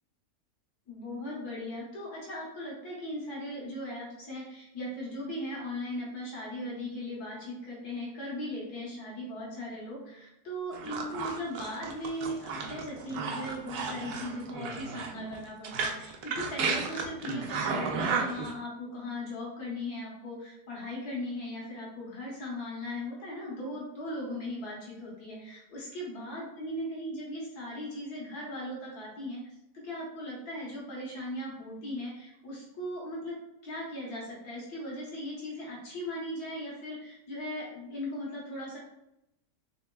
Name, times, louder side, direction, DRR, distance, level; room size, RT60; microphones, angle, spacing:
voice 1, 0.9-29.4 29.7-33.4 33.6-38.8, left 1 dB, 65° left, -4 dB, 1.8 m, -38 dB
sound 1, 10.7-18.5, right 5 dB, 75° right, 1.0 m, -33 dB
4.4 x 3.4 x 2.3 m, 0.86 s
omnidirectional pair, 1.8 m